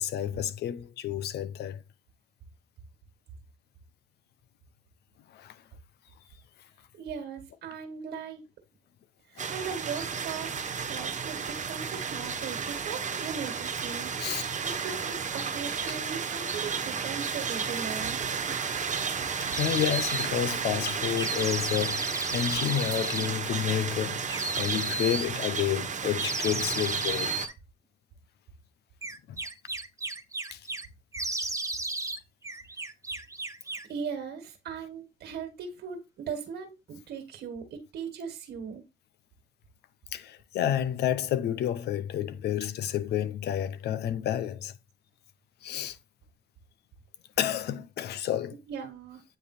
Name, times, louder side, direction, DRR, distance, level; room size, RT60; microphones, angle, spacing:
voice 1, 0.0-1.8 5.3-5.5 14.2-14.4 15.9-16.0 19.2-27.3 29.3-29.4 30.5-30.6 40.1-44.7 45.6-46.0 47.4-48.6, left 10 dB, 80° left, 0.8 m, -30 dB
voice 2, 7.0-8.4 9.3-14.1 14.6-18.2 33.9-38.8 48.7-49.2, right 6 dB, 75° right, 1.8 m, -38 dB
sound 1, 9.4-27.5, right 6 dB, 50° right, 1.3 m, -33 dB
sound 2, 19.5-20.3 21.2-23.3 24.3-25.3 26.2-27.5 29.0-30.9 31.1-32.2 32.4-33.9, right 3 dB, 20° right, 1.0 m, -34 dB
9.0 x 3.4 x 4.3 m
cardioid pair, 70°, 17 cm